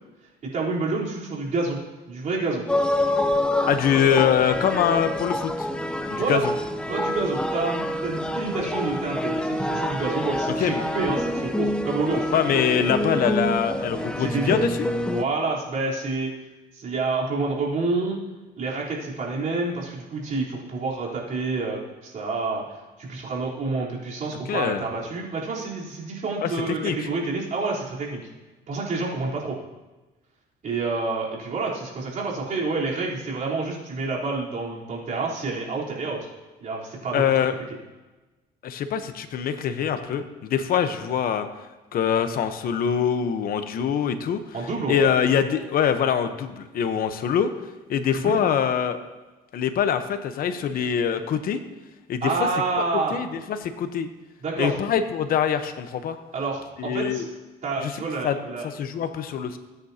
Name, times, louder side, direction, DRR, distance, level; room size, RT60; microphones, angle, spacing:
voice 1, 0.5-1.8 2.1-2.6 6.2-6.5 6.9-12.6 14.2-14.6 15.1-16.3 16.7-18.2 18.6-22.6 23.0-28.2 28.7-29.6 30.6-36.3 36.6-37.2 44.5-45.0 48.1-48.3 52.2-53.2 54.4-54.8 56.3-57.2 57.6-58.7, right 3 dB, 50° right, -6 dB, 3.8 m, -28 dB
sound 1, 2.7-15.2, left 1 dB, 5° left, 0.7 m, -27 dB
voice 2, 3.7-5.7 6.1-6.5 10.6-10.8 12.3-14.8 24.5-24.8 26.4-27.0 37.1-37.5 38.6-41.5 41.9-44.4 44.9-47.5 47.9-49.0 49.5-51.6 52.1-52.3 53.1-54.1 54.6-56.2 56.8-57.3 57.8-57.9 58.2-58.4 58.6-59.6, left 8 dB, 60° left, 9 dB, 1.0 m, -24 dB
19.5 x 9.3 x 2.9 m, 1.2 s
cardioid pair, 110°, 17 cm